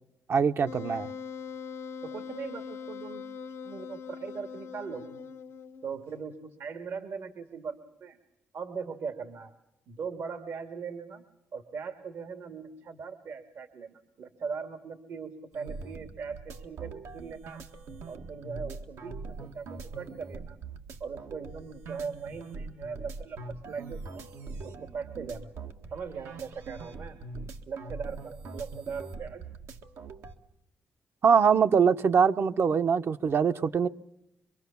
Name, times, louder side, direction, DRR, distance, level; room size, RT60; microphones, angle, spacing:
voice 1, 0.3-1.1 31.2-33.9, right 6 dB, 60° right, 0.9 m, -23 dB
Wind instrument woodwind instrument, 0.7-6.1, left 6 dB, 75° left, 0.9 m, -41 dB
voice 2, 2.0-3.2 3.6-5.2 5.8-7.8 8.0-8.2 8.5-9.5 9.9-11.2 11.5-17.6 18.1-20.6 21.0-24.3 24.6-25.5 25.9-27.2 27.7-29.5, right 5 dB, 75° right, 1.9 m, -39 dB
sound 1, 15.5-30.3, right 3 dB, 90° right, 1.8 m, -42 dB
25.5 x 23.0 x 7.1 m
cardioid pair, 80°, 5 cm